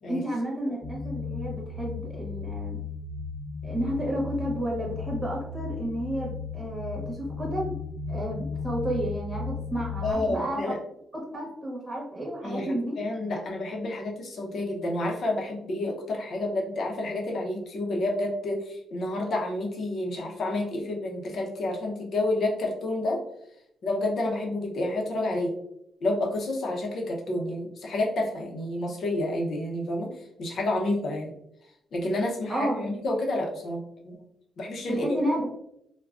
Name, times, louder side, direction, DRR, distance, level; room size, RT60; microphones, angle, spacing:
voice 1, 0.1-2.8 3.6-7.8 8.1-10.7 11.1-13.0 32.5-32.8 34.9-35.5, right 1 dB, 20° right, -3 dB, 0.9 m, -31 dB
sound 1, 0.8-10.1, left 5 dB, 15° left, 0.8 m, -35 dB
voice 2, 10.0-10.7 12.4-23.2 23.8-25.5 26.0-30.1 30.4-31.3 31.9-34.2 34.6-35.2, left 2 dB, 65° left, 0 dB, 0.7 m, -29 dB
3.4 x 2.2 x 2.4 m, 0.77 s
cardioid pair, 95°, 0 cm